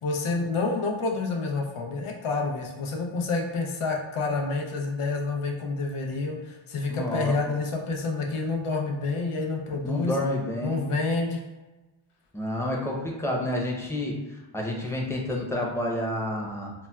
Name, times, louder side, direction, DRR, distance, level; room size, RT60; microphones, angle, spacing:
voice 1, 0.0-10.2 10.6-11.4, left 3 dB, 90° left, 1 dB, 0.6 m, -28 dB
voice 2, 6.9-7.3 9.8-10.8 12.3-14.2 14.5-16.7, left 1 dB, 5° left, -2 dB, 0.6 m, -29 dB
4.0 x 2.1 x 2.2 m, 1.1 s
wide cardioid pair, 70°, 49 cm